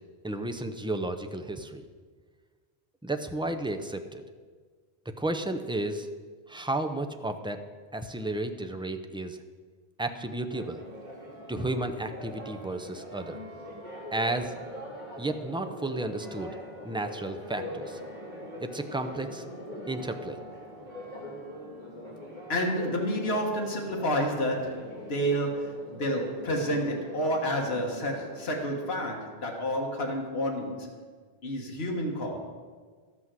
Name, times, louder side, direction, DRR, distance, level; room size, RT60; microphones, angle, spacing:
voice 1, 0.2-1.8 3.0-4.2 5.2-6.1 6.5-7.6 7.9-9.4 10.0-10.8 11.5-13.4 14.1-14.5 15.2-16.5 16.8-18.0 18.6-19.4 19.9-20.4, right 2 dB, 5° right, 6 dB, 0.4 m, -32 dB
Church bell, 10.5-28.9, equal, 45° right, 3.3 m, -43 dB
voice 2, 22.5-31.0 31.4-32.4, equal, 70° left, 0 dB, 1.7 m, -30 dB
12.5 x 6.1 x 7.5 m, 1.5 s
omnidirectional pair, 1.1 m